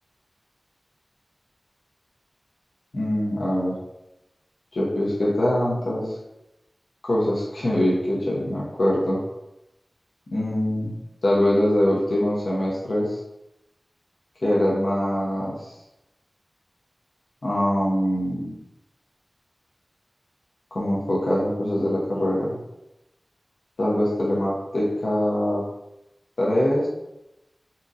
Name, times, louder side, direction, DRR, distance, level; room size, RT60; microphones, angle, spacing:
voice 1, 2.9-3.8 4.7-6.1 7.0-9.2 10.3-10.9 11.2-13.2 14.4-15.6 17.4-18.6 20.7-22.6 23.8-25.6 26.4-26.9, left 1 dB, 90° left, -5 dB, 0.7 m, -23 dB
3.9 x 2.9 x 2.4 m, 0.92 s
wide cardioid pair, 65°, 0 cm